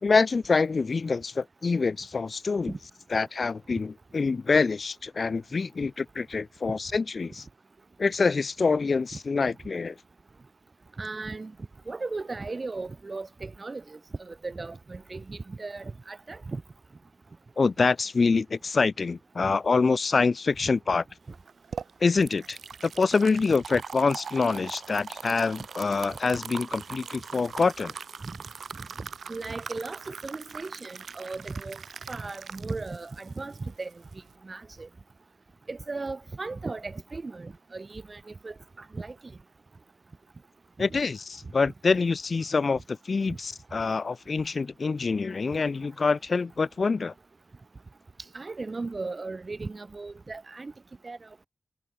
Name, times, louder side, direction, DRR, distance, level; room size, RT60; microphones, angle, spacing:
voice 1, 0.0-2.7 3.1-7.4 8.0-10.0 17.6-21.0 22.0-27.9 40.8-47.1, left 4 dB, 55° left, 2.9 m, -26 dB
voice 2, 11.0-11.5 11.9-16.6 28.2-28.4 29.0-31.8 32.1-33.9 34.4-34.9 35.7-38.5 38.9-39.1 40.9-41.0 43.3-43.4 48.3-50.7 51.0-51.2, right 3 dB, 40° right, 3.2 m, -36 dB
sound 1, 21.3-34.3, right 6 dB, 80° right, 2.2 m, -41 dB
wide cardioid pair, 80°, 0 cm